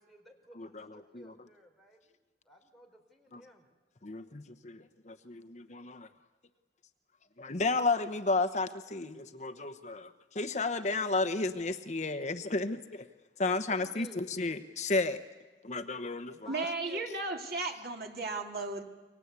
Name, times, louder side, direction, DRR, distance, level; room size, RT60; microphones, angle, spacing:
voice 1, 0.0-2.2 2.4-3.7 13.6-14.3 16.3-17.3, equal, ahead, 3 dB, 4.4 m, -54 dB
voice 2, 0.6-1.3 3.3-3.4 4.0-6.1 7.4-13.1 13.4-15.2 15.6-16.5, left 3 dB, 40° left, 9 dB, 1.0 m, -33 dB
voice 3, 16.5-18.8, right 3 dB, 60° right, 3 dB, 3.1 m, -35 dB
29.0 x 24.0 x 8.3 m, 1.3 s
head